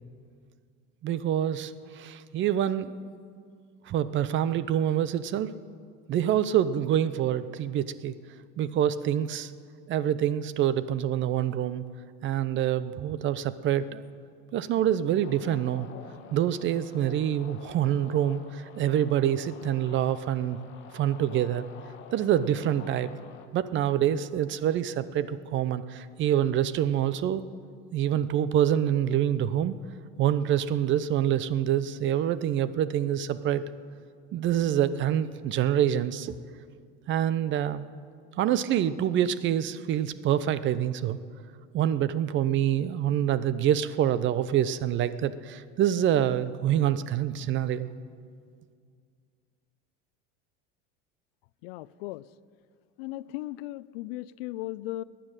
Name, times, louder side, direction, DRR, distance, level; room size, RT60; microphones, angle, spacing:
voice 1, 1.0-3.0 3.9-5.5 6.1-8.1 8.6-9.5 9.9-11.8 12.2-14.0 14.5-15.9 16.3-20.6 20.9-21.7 22.1-23.1 23.5-27.4 27.9-29.8 30.2-33.6 34.3-36.3 37.1-37.8 38.4-41.2 41.7-47.9, right 10 dB, 40° right, 15 dB, 0.7 m, -26 dB
sound 1, 15.2-23.5, left 8 dB, 40° left, 1.4 m, -49 dB
voice 2, 51.6-52.2 53.0-55.0, left 16 dB, 80° left, 19 dB, 0.5 m, -37 dB
15.5 x 10.0 x 8.9 m, 2.2 s
supercardioid pair, 120°, 29 cm